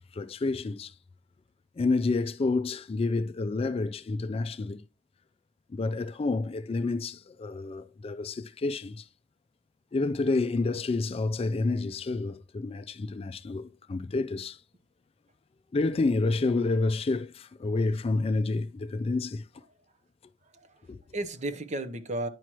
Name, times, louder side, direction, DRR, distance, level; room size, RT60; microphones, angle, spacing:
voice 1, 0.1-0.9 1.8-4.8 5.7-9.1 9.9-14.6 15.7-19.4 20.9-21.0, left 3 dB, 30° left, 0.3 m, -29 dB
voice 2, 20.4-22.3, right 1 dB, 40° right, 0.8 m, -35 dB
9.9 x 6.2 x 3.0 m
head